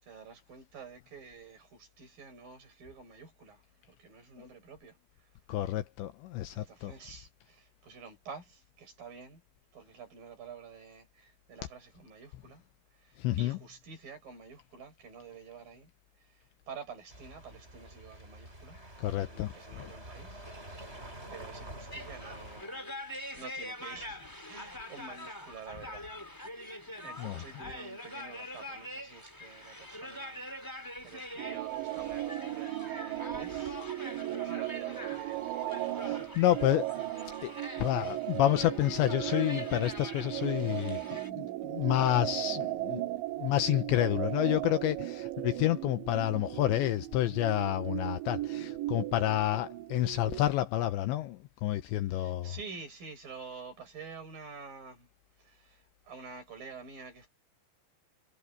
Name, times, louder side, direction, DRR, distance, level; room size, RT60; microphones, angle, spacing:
voice 1, 0.0-5.3 6.5-9.4 9.7-12.6 12.9-15.9 16.2-22.9 23.3-26.1 26.5-36.2 52.1-55.1 55.4-57.3, right 5 dB, 45° right, 7.7 m, -49 dB
voice 2, 5.5-6.9 13.2-13.6 19.0-19.5 27.2-27.4 36.0-37.1 37.4-37.5 37.8-43.0 43.4-52.5, left 14 dB, 80° left, 2.8 m, -29 dB
sound 1, 17.1-22.6, right 1 dB, 10° right, 7.5 m, -47 dB
sound 2, 21.9-41.3, left 1 dB, 5° left, 2.6 m, -44 dB
sound 3, 31.4-50.4, right 17 dB, 70° right, 3.5 m, -36 dB
omnidirectional pair, 5.8 m